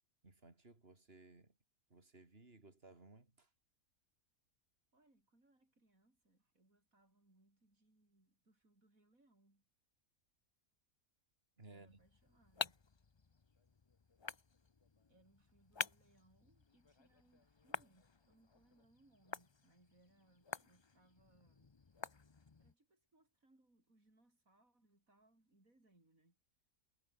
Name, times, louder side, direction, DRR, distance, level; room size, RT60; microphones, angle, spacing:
voice 1, 0.2-1.6 1.9-3.5 11.6-12.0, right 3 dB, 45° right, 3.6 m, -60 dB
voice 2, 4.9-9.6 11.7-12.8 15.1-21.8 22.6-26.4, right 2 dB, 75° right, 7.7 m, -73 dB
sound 1, 11.9-22.7, left 4 dB, 25° left, 0.6 m, -49 dB
omnidirectional pair, 1.5 m